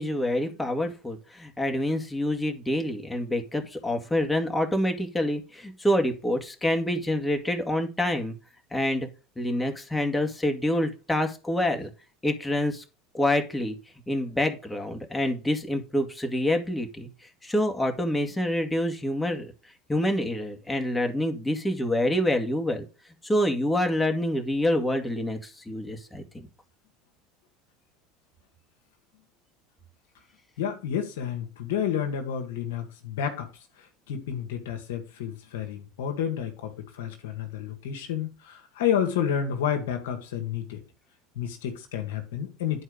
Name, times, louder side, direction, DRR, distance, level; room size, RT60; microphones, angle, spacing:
voice 1, 0.0-8.4 8.7-9.1 9.4-11.9 12.2-12.8 13.1-13.8 14.1-17.1 17.4-19.5 19.9-22.9 23.2-26.5, left 1 dB, 10° left, 2.0 m, -27 dB
voice 2, 30.6-33.5 34.1-40.8 41.3-42.8, left 8 dB, 75° left, 1.6 m, -30 dB
10.0 x 4.5 x 5.0 m
hypercardioid pair, 80°, 0 cm